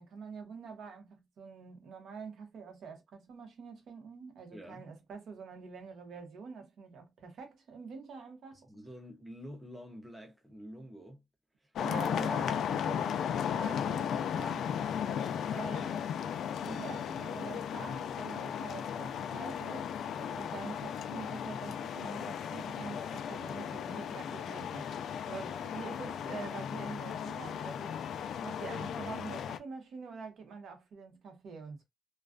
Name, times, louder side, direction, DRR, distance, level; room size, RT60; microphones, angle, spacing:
voice 1, 0.0-8.7 11.8-14.7 15.5-16.0 16.6-28.0 28.4-31.8, right 5 dB, 70° right, 0.8 m, -46 dB
voice 2, 4.5-4.8 8.5-11.2 11.6-11.7 15.0-15.4 20.2-20.4 25.3-25.6, equal, 5° right, 0.5 m, -49 dB
sound 1, 11.8-29.6, left 8 dB, 75° left, 0.3 m, -36 dB
2.3 x 2.2 x 2.3 m
wide cardioid pair, 180°, 0 cm